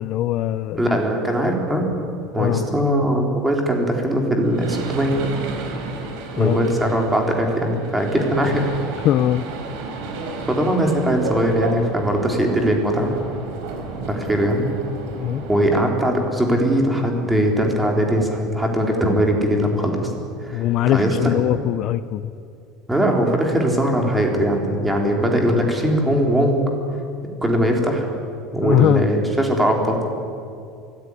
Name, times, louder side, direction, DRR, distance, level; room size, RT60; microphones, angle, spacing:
voice 1, 0.0-1.0 2.4-2.7 6.4-6.6 9.0-9.5 15.2-15.4 20.5-22.3 28.6-29.1, left 12 dB, 45° left, 14 dB, 0.6 m, -21 dB
voice 2, 0.8-1.9 2.3-5.1 6.4-8.7 10.5-13.1 14.1-14.7 15.5-20.1 20.4-21.1 22.9-26.7 27.4-28.1 28.5-30.1, equal, 5° right, 1 dB, 3.5 m, -20 dB
sound 1, 4.4-15.8, right 3 dB, 70° right, 4.8 m, -32 dB
24.0 x 16.5 x 9.8 m, 2.4 s
cardioid pair, 160°, 0 cm